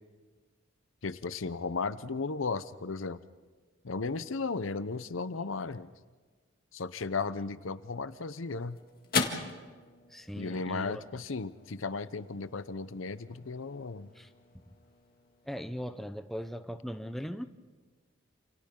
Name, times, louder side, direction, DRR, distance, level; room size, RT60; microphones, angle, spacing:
voice 1, 1.0-3.2 3.8-5.9 6.7-8.8 10.3-14.1, left 4 dB, 75° left, 14 dB, 0.7 m, -35 dB
sound 1, 7.8-16.4, left 4 dB, 45° left, 1.9 m, -40 dB
voice 2, 10.1-11.0 14.1-14.3 15.5-17.5, equal, ahead, 8 dB, 0.7 m, -39 dB
28.5 x 28.5 x 3.8 m, 1.4 s
head